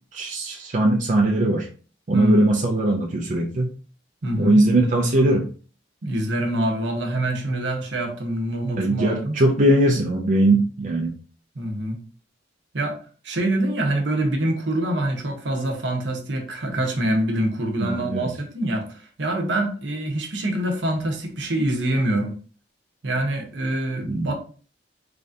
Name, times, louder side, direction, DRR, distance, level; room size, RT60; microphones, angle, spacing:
voice 1, 0.1-1.7 2.1-3.7 4.4-5.5 8.8-11.1 17.8-18.3 24.1-24.3, right 1 dB, 45° right, 0.6 m, -20 dB
voice 2, 2.1-2.6 4.2-4.6 6.0-9.4 11.5-12.0 12.7-13.0 13.2-22.3 23.0-24.3, right 1 dB, 70° right, 1.0 m, -25 dB
3.7 x 3.3 x 2.7 m
head